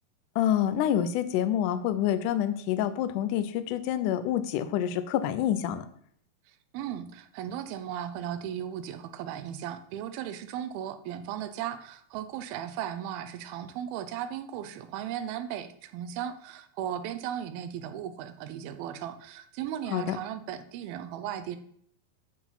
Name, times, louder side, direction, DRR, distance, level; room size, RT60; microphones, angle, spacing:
voice 1, 0.4-5.9 19.9-20.2, left 10 dB, 80° left, 11 dB, 1.8 m, -27 dB
voice 2, 6.5-21.6, right 10 dB, 85° right, 10 dB, 2.5 m, -36 dB
9.5 x 4.7 x 5.6 m, 0.65 s
omnidirectional pair, 4.3 m